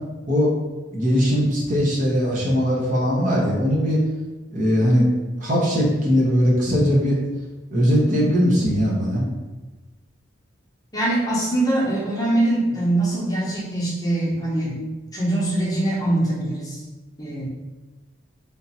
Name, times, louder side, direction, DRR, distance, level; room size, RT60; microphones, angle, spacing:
voice 1, 0.9-4.0 4.5-5.1 5.4-7.2 7.7-9.3, equal, 40° right, -4 dB, 0.9 m, -20 dB
voice 2, 10.9-14.8 15.1-16.8 17.2-17.4, right 1 dB, 20° left, -6 dB, 1.0 m, -23 dB
3.6 x 2.8 x 4.1 m, 1.2 s
head